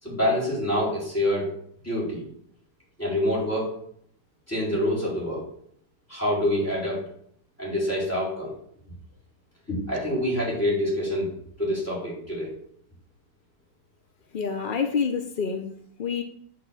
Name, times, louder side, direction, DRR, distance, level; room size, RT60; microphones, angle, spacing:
voice 1, 0.0-1.5 1.8-2.2 3.0-3.7 4.5-5.5 6.1-7.0 7.6-8.5 9.7-11.3 11.6-12.5, left 1 dB, 10° left, -6 dB, 4.6 m, -26 dB
voice 2, 14.3-16.2, left 6 dB, 70° left, 6 dB, 0.4 m, -28 dB
8.2 x 4.6 x 7.2 m, 0.65 s
omnidirectional pair, 1.9 m